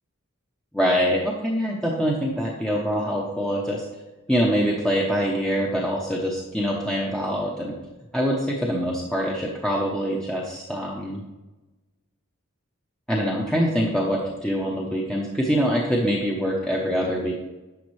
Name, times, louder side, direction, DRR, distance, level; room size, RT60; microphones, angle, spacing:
voice 1, 0.7-3.8 4.3-7.7 8.1-11.2 13.1-17.4, equal, 5° left, -3 dB, 0.8 m, -24 dB
10.5 x 6.4 x 3.2 m, 1.1 s
head